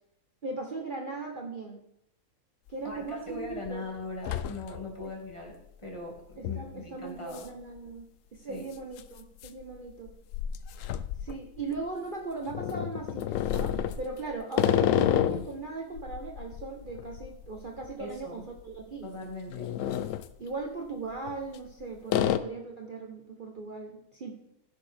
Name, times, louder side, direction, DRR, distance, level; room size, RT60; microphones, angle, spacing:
voice 1, 0.4-1.8 2.7-3.8 5.0-5.1 6.4-8.0 8.3-10.1 11.2-19.1 20.4-24.3, right 3 dB, 40° right, 2 dB, 0.9 m, -38 dB
sound 1, 2.7-2.8 3.3-3.7 4.0-5.0 5.4-5.5 6.4-6.7 7.3-7.5 7.8-7.9 8.8-11.9 12.5-15.6 16.0-18.3 18.6-18.8 19.3-20.3 21.2-21.7 22.1-22.4, left 11 dB, 70° left, 0.8 m, -30 dB
voice 2, 2.8-7.5 8.4-8.7 18.0-18.5 19.0-19.7, left 2 dB, 20° left, -1 dB, 2.0 m, -40 dB
15.0 x 6.6 x 3.4 m, 0.78 s
omnidirectional pair, 1.6 m